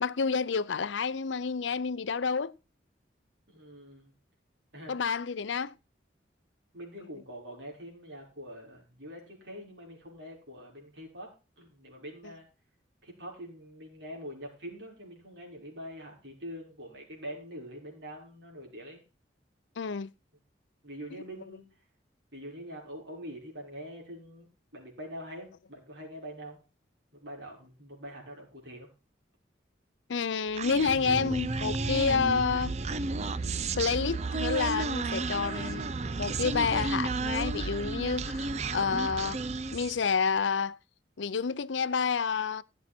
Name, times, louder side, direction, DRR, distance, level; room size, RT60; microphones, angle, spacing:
voice 1, 0.0-2.5 4.9-5.7 19.8-20.1 30.1-32.7 33.8-35.9 36.2-39.4 39.7-40.8 41.2-42.6, left 5 dB, 80° left, 0.6 m, -29 dB
voice 2, 3.5-4.1 4.7-4.9 6.7-12.5 13.0-19.0 20.8-21.6 22.3-26.6 27.1-28.9, equal, 70° right, 5.7 m, -44 dB
Human voice, 30.6-40.0, right 3 dB, 35° right, 0.5 m, -32 dB
16.0 x 7.2 x 4.4 m
head